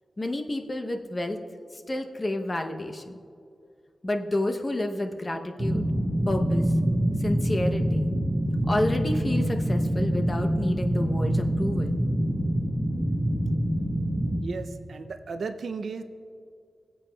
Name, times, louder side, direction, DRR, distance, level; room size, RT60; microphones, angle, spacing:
voice 1, 0.2-1.4 1.9-3.1 4.0-5.8 6.3-6.6 7.2-8.1 8.7-11.9, left 1 dB, 30° left, 5 dB, 0.7 m, -29 dB
sound 1, 5.6-14.4, right 1 dB, 15° right, 1.1 m, -25 dB
voice 2, 14.4-16.0, right 4 dB, 75° right, 8 dB, 0.4 m, -35 dB
21.0 x 7.6 x 2.2 m, 2.4 s
wide cardioid pair, 105°, 0 cm